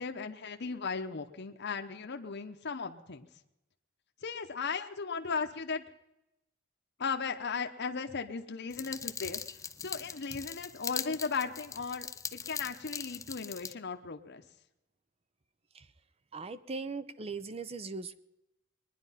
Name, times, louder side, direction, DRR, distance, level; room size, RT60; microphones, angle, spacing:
voice 1, 0.0-3.3 4.2-5.8 7.0-9.4 9.8-14.4, left 5 dB, 55° left, 5 dB, 0.9 m, -36 dB
sound 1, 8.7-13.7, left 6 dB, 15° left, 0.5 m, -40 dB
voice 2, 16.3-18.1, right 4 dB, 30° right, 14 dB, 0.6 m, -39 dB
22.0 x 10.5 x 5.7 m, 0.91 s
head